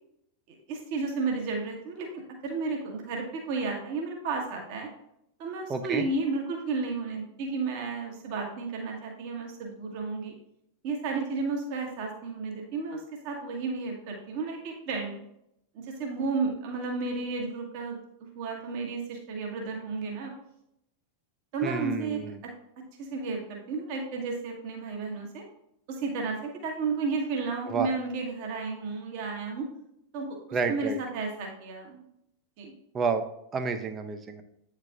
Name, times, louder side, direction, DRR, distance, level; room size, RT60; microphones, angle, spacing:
voice 1, 0.5-4.9 5.4-10.3 10.8-15.1 15.7-20.3 21.5-22.5 23.0-25.4 25.9-29.7 30.1-32.0 32.6-32.7, right 4 dB, 45° right, 1 dB, 1.2 m, -33 dB
voice 2, 5.7-6.0 21.6-22.4 27.7-27.9 30.5-31.0 32.9-33.3 33.5-34.4, right 5 dB, 20° right, 7 dB, 0.6 m, -30 dB
8.4 x 4.6 x 2.4 m, 0.77 s
figure-of-eight pair, 90°, 0 cm